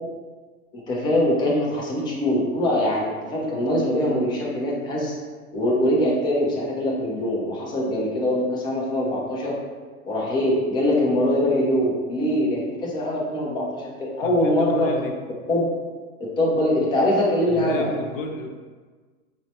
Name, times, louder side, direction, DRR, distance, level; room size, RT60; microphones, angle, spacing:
voice 1, 0.7-5.2 5.5-9.5 10.0-14.9 15.5-15.7 16.2-17.9, left 1 dB, 10° left, -3 dB, 0.4 m, -23 dB
voice 2, 14.2-15.1 17.5-18.5, left 3 dB, 60° left, 3 dB, 0.7 m, -31 dB
4.8 x 2.1 x 2.8 m, 1.5 s
hypercardioid pair, 110°, 44 cm